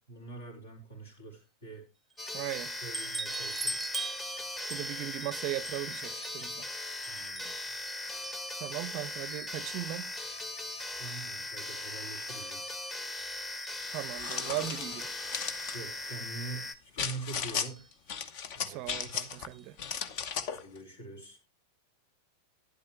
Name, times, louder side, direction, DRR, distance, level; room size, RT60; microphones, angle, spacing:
voice 1, 0.1-1.9 2.8-3.9 7.0-7.7 11.0-12.8 15.7-17.9 18.5-19.2 20.5-21.4, right 3 dB, 65° left, 3.9 m, -44 dB
sound 1, 2.2-16.7, left 2 dB, 15° left, 1.2 m, -39 dB
voice 2, 2.3-2.7 4.7-6.6 8.6-10.1 13.9-15.1 18.7-19.8, right 16 dB, 40° right, 0.5 m, -38 dB
sound 2, 2.6-8.9 9.3-10.3 10.7-11.3 12.0-12.1 12.4-12.5 12.9-14.9 15.9-16.0 16.4-16.5 17.7-17.9 19.0-19.2 19.5-19.6 19.9-20.0, right 3 dB, 5° right, 0.8 m, -43 dB
sound 3, 13.9-15.8 17.0-17.7 18.1-19.5 19.8-20.6, left 7 dB, 45° left, 0.9 m, -36 dB
12.0 x 10.5 x 3.1 m
figure-of-eight pair, 90°, 0 cm